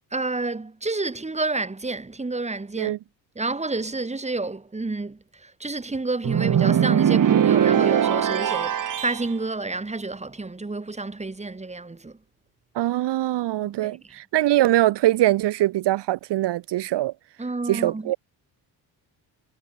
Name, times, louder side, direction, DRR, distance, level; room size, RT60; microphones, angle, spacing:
voice 1, 0.1-2.9 3.3-12.2 13.6-14.0 17.4-18.1, right 3 dB, 15° right, 3.2 m, -30 dB
sound 1, 6.2-9.3, right 9 dB, 50° right, 3.0 m, -20 dB
voice 2, 12.8-17.1 17.7-18.2, right 15 dB, 80° right, 3.4 m, -22 dB
cardioid pair, 100°, 41 cm